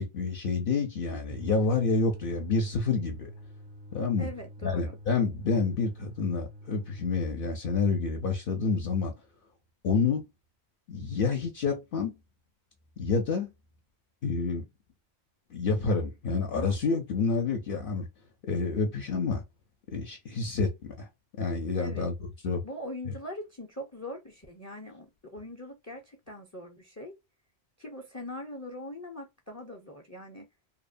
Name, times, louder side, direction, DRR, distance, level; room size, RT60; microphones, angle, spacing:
voice 1, 0.0-3.3 3.9-4.3 4.6-9.1 9.8-10.2 10.9-12.1 13.0-13.5 14.2-14.7 15.5-18.1 18.5-19.4 19.9-21.1 21.4-22.2 22.4-22.6 23.1-23.2, left 4 dB, 65° left, 0.7 m, -28 dB
sound 1, 1.3-7.3, right 1 dB, 45° right, 0.3 m, -46 dB
voice 2, 4.2-5.0 21.8-22.1 22.6-27.2 27.8-30.5, left 1 dB, 25° left, 0.4 m, -42 dB
2.8 x 2.1 x 2.4 m
omnidirectional pair, 1.1 m